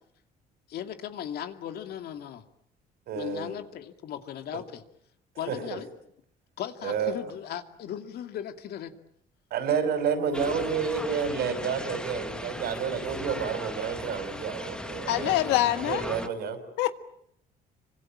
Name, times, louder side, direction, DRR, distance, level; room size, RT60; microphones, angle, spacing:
voice 1, 0.7-2.4 3.1-4.8 5.4-5.9 6.6-8.9, left 10 dB, 70° left, 8 dB, 2.5 m, -37 dB
voice 2, 3.1-3.5 5.5-5.8 6.8-7.1 9.5-16.6, right 6 dB, 70° right, 10 dB, 5.8 m, -30 dB
sound 1, 10.3-16.3, left 1 dB, 5° left, 1.8 m, -38 dB
voice 3, 15.1-16.0 16.8-16.9, left 14 dB, 90° left, 11 dB, 1.7 m, -24 dB
27.0 x 25.0 x 8.8 m, 0.71 s
cardioid pair, 110°, 17 cm